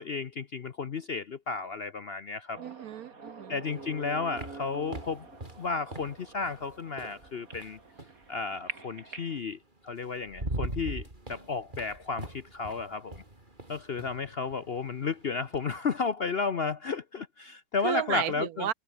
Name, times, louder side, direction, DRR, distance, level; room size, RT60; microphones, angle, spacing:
voice 1, 0.0-2.6 3.5-5.3 5.6-7.8 8.3-13.2 13.7-18.7, left 4 dB, 50° left, 0.8 m, -33 dB
sound 1, 2.5-9.4, right 3 dB, 55° right, 3.7 m, -46 dB
voice 2, 2.6-3.6 17.8-18.7, right 11 dB, 70° right, 1.0 m, -33 dB
sound 2, 3.7-8.2 9.5-9.6 10.0-15.7, right 2 dB, 25° right, 4.4 m, -41 dB
omnidirectional pair, 1.8 m